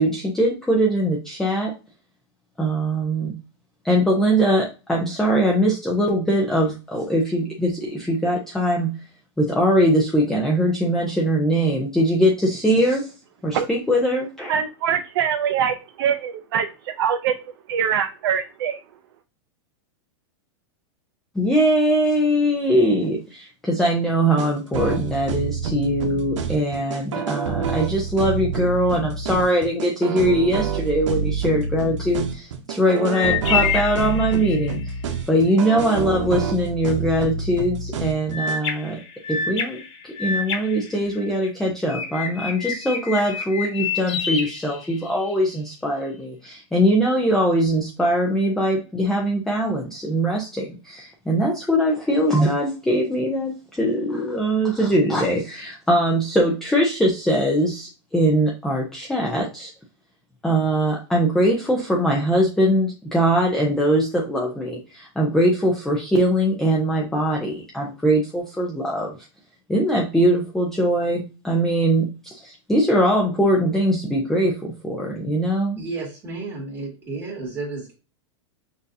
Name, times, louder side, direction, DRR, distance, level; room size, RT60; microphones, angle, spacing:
voice 1, 0.0-1.7 2.6-3.3 3.8-8.9 9.4-13.1 13.4-14.5 21.3-34.8 35.3-39.0 39.3-39.8 40.2-59.7 60.4-69.1 69.7-75.8, equal, 5° left, -2 dB, 0.4 m, -21 dB
voice 2, 14.5-17.3 17.7-18.8, right 8 dB, 55° right, 6 dB, 0.4 m, -23 dB
sound 1, 24.4-38.6, right 5 dB, 90° right, 0.8 m, -27 dB
sound 2, 33.1-34.8 38.3-41.5 41.9-45.3, left 6 dB, 75° left, 1.2 m, -28 dB
voice 3, 75.8-77.9, right 3 dB, 15° right, -4 dB, 2.0 m, -32 dB
6.1 x 2.6 x 2.6 m, 0.30 s
supercardioid pair, 165°, 15 cm